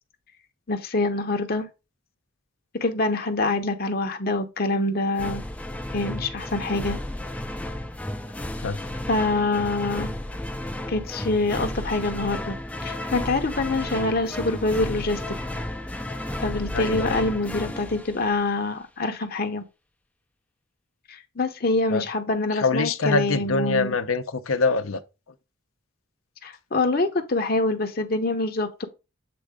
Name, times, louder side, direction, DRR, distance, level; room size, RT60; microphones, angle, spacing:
voice 1, 0.7-1.7 2.7-5.4 5.9-7.0 9.1-10.1 10.9-15.2 16.4-19.6 21.1-24.0 26.4-28.9, left 2 dB, 45° left, 0.8 m, -25 dB
sound 1, 5.2-18.8, left 1 dB, 5° left, 0.4 m, -33 dB
voice 2, 16.7-17.2 21.9-22.0 22.5-25.0, left 4 dB, 85° left, 0.7 m, -24 dB
7.8 x 3.6 x 3.6 m
head